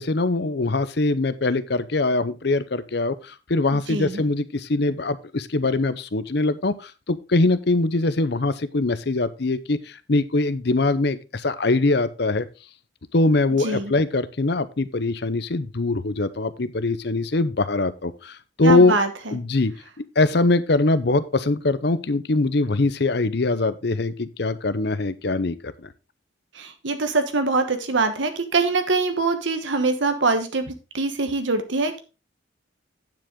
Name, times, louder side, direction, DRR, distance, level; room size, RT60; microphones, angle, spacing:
voice 1, 0.0-12.5 13.1-19.0 19.3-19.7 20.0-25.9, left 2 dB, 55° left, 14 dB, 0.7 m, -22 dB
voice 2, 3.7-4.2 13.6-13.9 18.6-19.4 26.5-32.0, right 3 dB, 75° right, 7 dB, 1.2 m, -24 dB
9.2 x 7.7 x 3.6 m, 0.31 s
head